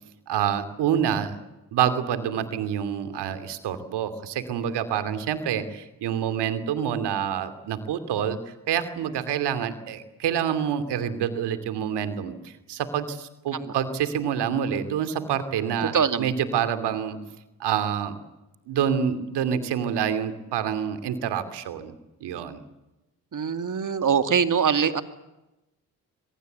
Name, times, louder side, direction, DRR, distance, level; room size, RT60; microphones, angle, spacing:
voice 1, 0.3-1.4 1.7-17.2 17.6-18.2 18.7-21.9 22.2-22.6, right 8 dB, 80° right, 11 dB, 2.8 m, -27 dB
voice 2, 15.9-16.3 23.3-25.0, right 6 dB, 50° right, 10 dB, 2.3 m, -23 dB
24.5 x 21.5 x 8.1 m, 0.98 s
supercardioid pair, 55°, 40 cm